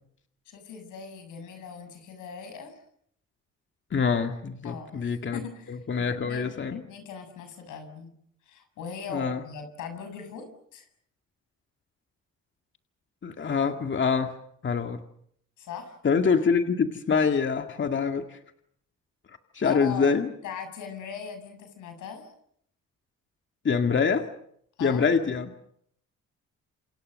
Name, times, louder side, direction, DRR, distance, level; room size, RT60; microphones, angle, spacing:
voice 1, 0.5-2.8 4.6-8.1 8.4-10.5 10.7-10.9 15.6-16.0 19.6-20.2 20.4-22.3 24.8-25.1, left 6 dB, 85° left, 7 dB, 7.3 m, -40 dB
voice 2, 3.9-5.4 5.7-6.8 9.1-9.4 13.2-14.3 14.6-15.0 16.0-18.4 19.5-20.3 23.6-24.3 24.8-25.5, left 5 dB, 40° left, 5 dB, 2.1 m, -25 dB
28.0 x 27.5 x 6.6 m, 0.70 s
cardioid pair, 90°, 30 cm